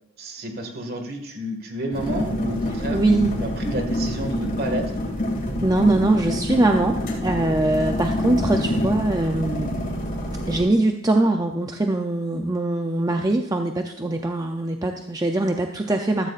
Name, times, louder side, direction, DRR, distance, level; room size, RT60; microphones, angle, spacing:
voice 1, 0.2-3.0 3.4-5.0, right 1 dB, 45° right, 5 dB, 1.8 m, -30 dB
sound 1, 1.9-10.6, left 1 dB, 40° left, 2.5 m, -26 dB
voice 2, 2.9-3.3 5.6-9.7 10.5-16.3, right 2 dB, 15° right, 3 dB, 0.5 m, -22 dB
14.0 x 14.0 x 2.5 m, 0.78 s
head